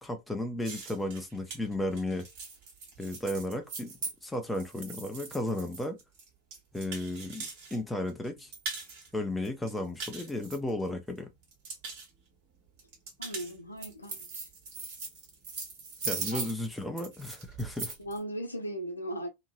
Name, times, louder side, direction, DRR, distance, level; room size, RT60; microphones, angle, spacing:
voice 1, 0.0-2.2 3.0-3.9 4.2-6.0 6.7-8.5 9.1-11.3 16.0-17.9, left 1 dB, 5° left, 0.6 m, -34 dB
sound 1, 0.6-7.8 8.1-9.1 9.4-11.1 11.4-12.1 12.8-18.2, right 4 dB, 50° right, 1.5 m, -40 dB
voice 2, 13.2-14.5 16.3-16.4 18.0-19.3, right 1 dB, 80° left, 0.7 m, -38 dB
2.9 x 2.8 x 2.5 m
figure-of-eight pair, 90°, 0 cm